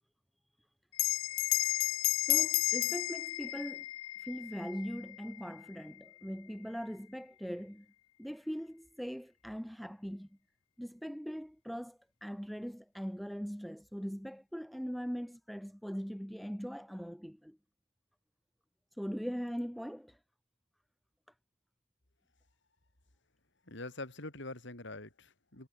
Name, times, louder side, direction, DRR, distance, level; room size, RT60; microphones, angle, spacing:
Bell, 0.9-5.8, left 18 dB, 85° left, 0.3 m, -32 dB
voice 1, 2.3-3.8 4.2-7.9 8.2-10.3 10.8-17.6 19.0-20.2, equal, ahead, 1.2 m, -41 dB
voice 2, 23.7-25.7, left 2 dB, 65° left, 4.0 m, -44 dB
head